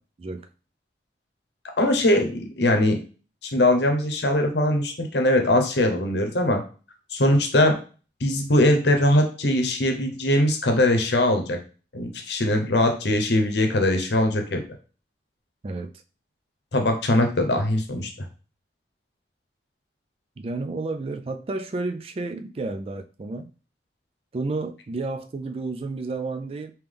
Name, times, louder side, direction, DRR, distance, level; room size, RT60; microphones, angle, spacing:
voice 1, 1.8-3.0 3.4-6.6 7.1-7.8 8.2-11.6 11.9-14.6 16.7-18.3, left 1 dB, 75° left, 0.8 m, -21 dB
voice 2, 20.4-23.5 24.3-26.7, right 3 dB, 30° right, 0.3 m, -31 dB
3.6 x 2.9 x 3.4 m
head